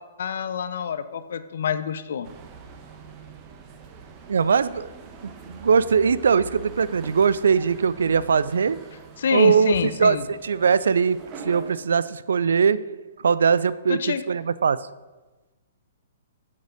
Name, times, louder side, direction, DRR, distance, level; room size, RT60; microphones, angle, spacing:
voice 1, 0.0-2.3 9.2-10.2 13.9-14.2, left 7 dB, 55° left, 12 dB, 0.7 m, -27 dB
sound 1, 2.2-11.8, right 4 dB, 30° right, 1.2 m, -44 dB
voice 2, 4.3-4.9 5.2-8.8 9.3-12.8 13.2-14.8, right 6 dB, 65° right, 17 dB, 0.4 m, -21 dB
8.0 x 7.5 x 6.4 m, 1.2 s
figure-of-eight pair, 115°, 0 cm